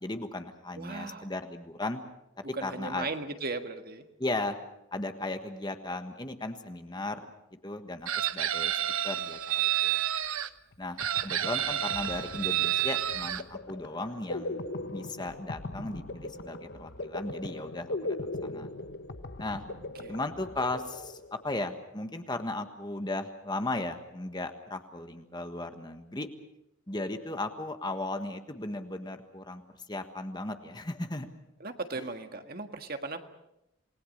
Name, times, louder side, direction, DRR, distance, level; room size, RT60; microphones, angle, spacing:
voice 1, 0.0-2.0 2.6-3.1 4.2-4.6 4.9-7.2 7.6-8.7 9.0-10.0 10.8-14.6 14.9-18.7 19.4-19.6 20.1-26.3 26.9-29.6 29.9-31.3 31.9-32.1, left 2 dB, 20° left, 7 dB, 1.4 m, -36 dB
voice 2, 0.8-1.3 2.5-4.0 20.0-20.1 31.6-33.3, right 3 dB, 45° right, 7 dB, 1.7 m, -37 dB
Chicken rooster, 8.1-10.5 11.0-13.4, right 11 dB, 85° right, 0.9 m, -29 dB
sound 1, 10.7-10.8 11.0-21.6, left 2 dB, 50° left, 1.0 m, -40 dB
28.0 x 20.0 x 6.6 m, 0.86 s
head